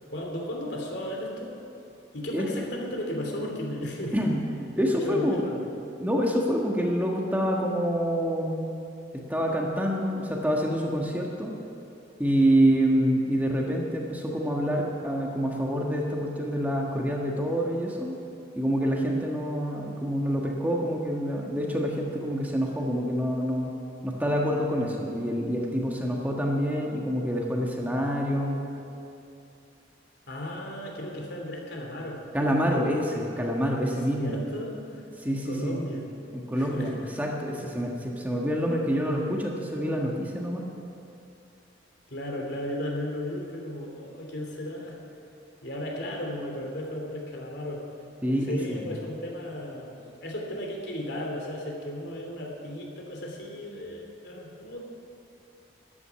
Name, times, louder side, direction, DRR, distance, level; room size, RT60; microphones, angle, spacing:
voice 1, 0.1-1.6 2.1-4.2 4.8-5.7 30.3-32.2 34.1-36.0 36.5-37.0 39.0-39.2 42.1-45.0 45.6-47.8 48.5-49.9 50.2-54.8, left 1 dB, 65° left, 0 dB, 2.9 m, -35 dB
voice 2, 4.8-5.4 6.0-8.7 9.1-11.5 12.2-18.2 18.5-23.7 24.0-28.6 32.3-34.4 35.2-35.8 36.3-40.6 48.2-48.8, equal, 10° right, -1 dB, 1.4 m, -27 dB
13.0 x 9.6 x 9.7 m, 2.7 s
head